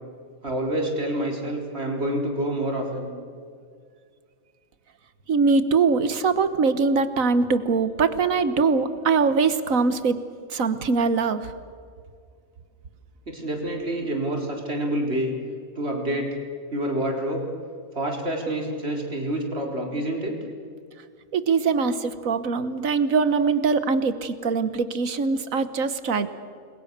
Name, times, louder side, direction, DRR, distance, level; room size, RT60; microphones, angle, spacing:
voice 1, 0.4-3.1 13.3-15.3 15.8-16.4 16.7-17.4 17.9-20.4, right 1 dB, 50° right, 0 dB, 4.2 m, -27 dB
voice 2, 5.3-10.2 10.5-11.5 21.3-26.3, right 4 dB, 80° right, 12 dB, 1.6 m, -22 dB
29.5 x 22.0 x 6.7 m, 2.2 s
omnidirectional pair, 1.4 m